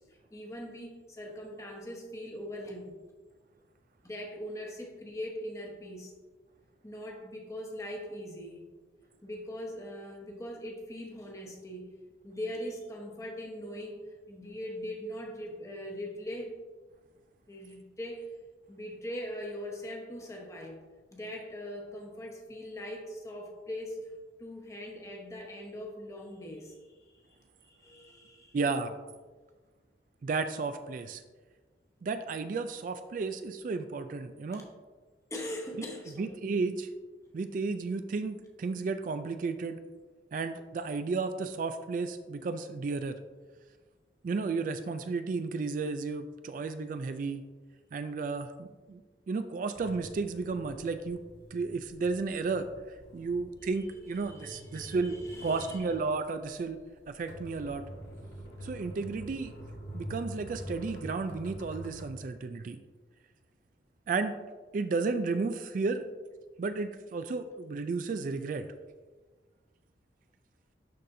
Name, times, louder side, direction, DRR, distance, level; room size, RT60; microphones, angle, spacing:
voice 1, 0.3-3.0 4.0-6.1 6.8-8.7 9.2-11.9 12.2-16.6 17.5-18.3 18.7-20.8 21.1-24.1 24.4-27.2 27.6-28.6 34.5-34.6 35.3-36.4 53.6-56.0, equal, 15° left, 0 dB, 1.0 m, -41 dB
voice 2, 28.5-29.0 30.2-31.2 32.0-34.6 36.2-36.9 37.3-39.8 40.3-43.2 44.2-47.4 47.9-49.0 49.3-51.2 51.5-56.8 57.1-57.8 58.6-59.5 59.9-62.8 64.1-64.4 64.7-66.0 66.6-68.7, right 4 dB, 45° right, 9 dB, 0.3 m, -33 dB
sound 1, 49.7-62.1, equal, 70° left, 1.3 m, -46 dB
11.5 x 4.1 x 2.7 m, 1.4 s
head